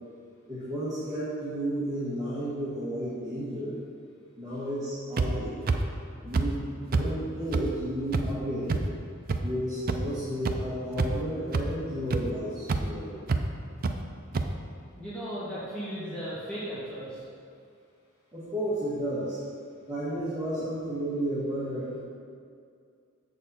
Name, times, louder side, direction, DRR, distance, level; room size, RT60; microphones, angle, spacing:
voice 1, 0.5-3.8 4.3-5.8 6.2-8.8 9.4-13.2 18.3-19.4 19.9-22.0, right 1 dB, 20° right, -10 dB, 1.5 m, -32 dB
sound 1, 5.2-5.3 5.7-5.8 6.3-6.4 6.9-7.0 7.5-7.6 8.1-8.2 8.7-8.8 9.3-9.4 9.9-10.0 10.4-10.5 10.9-11.2 11.5-11.6 12.1-12.2 12.7-12.8 13.3-13.4 13.8-13.9 14.3-14.4, right 4 dB, 45° right, 0.4 m, -25 dB
voice 2, 14.9-17.2, equal, 5° left, -11 dB, 1.8 m, -36 dB
7.2 x 6.7 x 4.1 m, 2.3 s
head